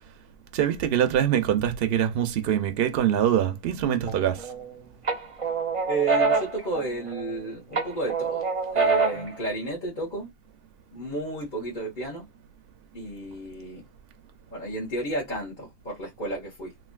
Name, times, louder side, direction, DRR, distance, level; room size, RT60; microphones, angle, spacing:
voice 1, 0.5-4.5 9.2-9.3, right 10 dB, 70° right, 0.8 m, -24 dB
sound 1, 4.1-4.7 5.1-7.4 7.7-9.4, right 4 dB, 35° right, 0.6 m, -25 dB
voice 2, 5.9-8.5 8.7-10.3 10.9-12.2 12.9-13.8 14.5-16.7, right 2 dB, 50° left, 1.4 m, -32 dB
3.2 x 2.6 x 2.3 m
omnidirectional pair, 1.1 m